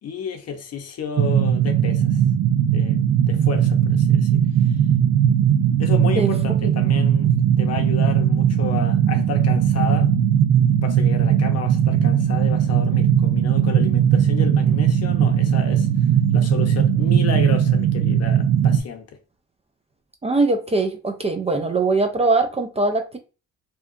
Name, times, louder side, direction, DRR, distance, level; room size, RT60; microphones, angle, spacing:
voice 1, 0.0-2.2 2.7-3.0 3.3-4.4 5.8-7.3 7.6-10.1 10.8-15.9 16.3-19.2, left 7 dB, 55° left, 0.7 m, -31 dB
sound 1, 1.2-18.8, right 9 dB, 80° right, 0.5 m, -18 dB
voice 2, 20.2-23.2, right 3 dB, 20° right, 0.4 m, -21 dB
2.7 x 2.3 x 2.4 m
cardioid pair, 90°, 30 cm